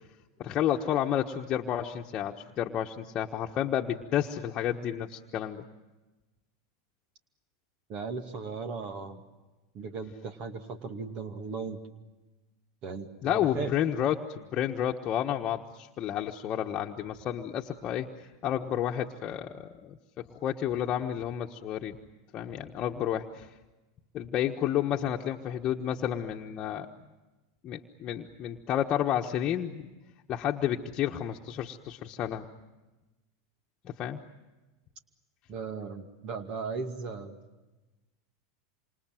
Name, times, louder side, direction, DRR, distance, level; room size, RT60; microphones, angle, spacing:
voice 1, 0.4-5.6 13.2-18.1 18.4-22.0 22.3-23.5 24.1-26.9 27.6-29.9 30.3-32.5 33.8-34.2, left 10 dB, 40° left, 1 dB, 1.3 m, -31 dB
voice 2, 7.9-9.2 9.7-11.8 12.8-13.7 35.5-37.4, right 4 dB, 45° right, 7 dB, 2.3 m, -37 dB
27.5 x 26.0 x 7.7 m, 1.1 s
hypercardioid pair, 100°, 2 cm